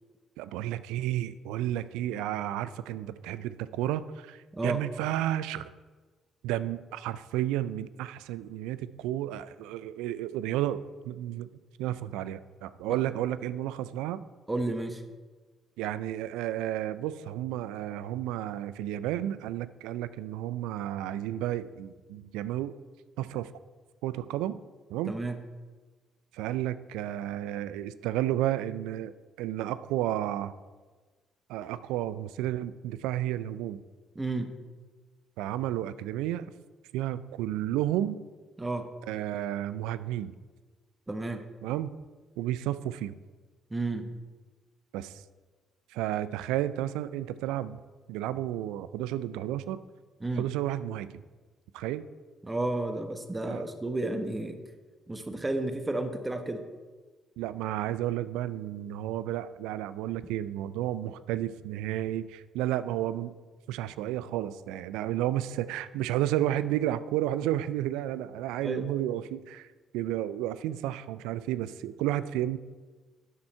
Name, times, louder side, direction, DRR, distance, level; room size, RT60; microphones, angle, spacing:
voice 1, 0.4-5.7 6.4-11.5 11.8-14.2 15.8-22.8 23.2-23.5 24.0-24.6 24.9-25.1 26.3-30.5 31.5-33.8 35.4-36.5 36.9-38.2 39.1-40.3 41.6-41.9 42.4-43.1 44.9-45.2 45.9-47.8 48.1-49.8 50.4-51.2 51.7-52.0 53.5-53.6 57.4-63.3 63.7-69.7 69.9-72.6, right 13 dB, 75° right, 15 dB, 0.3 m, -32 dB
voice 2, 4.5-4.8 12.9-13.0 14.5-15.0 25.1-25.4 34.1-34.5 38.6-38.9 41.1-41.4 43.7-44.1 50.2-50.5 52.4-54.6 55.1-56.6 68.6-68.9, right 2 dB, 20° right, 7 dB, 1.1 m, -32 dB
9.6 x 6.1 x 4.4 m, 1.3 s
hypercardioid pair, 45°, 0 cm